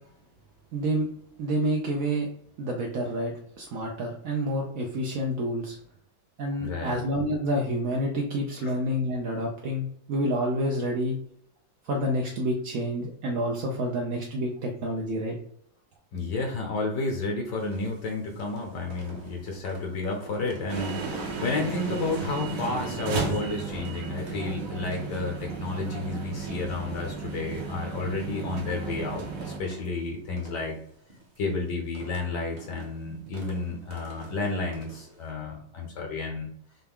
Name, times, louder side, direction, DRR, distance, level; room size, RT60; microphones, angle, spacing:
voice 1, 0.7-1.1 1.4-2.3 2.6-5.8 6.4-11.2 11.8-15.4, equal, 70° right, 0 dB, 0.8 m, -28 dB
voice 2, 6.6-7.0 8.6-8.7 16.1-30.8 31.4-36.5, left 3 dB, 65° left, 2 dB, 1.3 m, -31 dB
sound 1, 17.6-35.3, right 1 dB, 40° right, 0.6 m, -49 dB
sound 2, 20.7-29.6, right 4 dB, 55° right, 1.1 m, -34 dB
5.6 x 2.3 x 3.5 m, 0.67 s
omnidirectional pair, 2.2 m